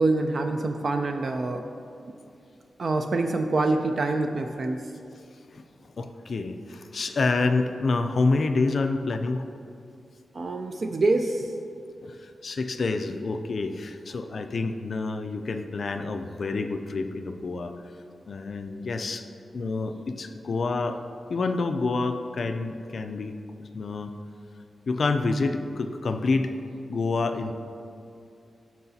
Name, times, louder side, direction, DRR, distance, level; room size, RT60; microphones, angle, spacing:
voice 1, 0.0-1.6 2.8-4.8 10.3-11.5, right 2 dB, 45° right, 5 dB, 0.3 m, -25 dB
voice 2, 6.0-9.4 12.0-12.2 12.4-17.7 18.3-19.2 19.5-21.0 21.3-23.4 23.7-24.1 24.9-26.5 26.9-27.5, left 3 dB, 50° left, 7 dB, 0.3 m, -27 dB
13.5 x 4.6 x 2.7 m, 2.5 s
wide cardioid pair, 170°, 0 cm